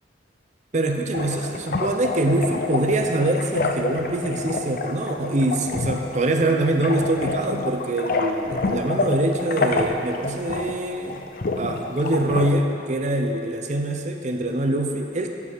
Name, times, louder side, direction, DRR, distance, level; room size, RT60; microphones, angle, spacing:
voice 1, 0.7-11.2 11.6-15.3, right 1 dB, 40° right, 4 dB, 0.6 m, -24 dB
sound 1, 1.1-12.5, left 3 dB, 50° left, 0.5 m, -28 dB
13.5 x 4.8 x 5.1 m, 2.6 s
head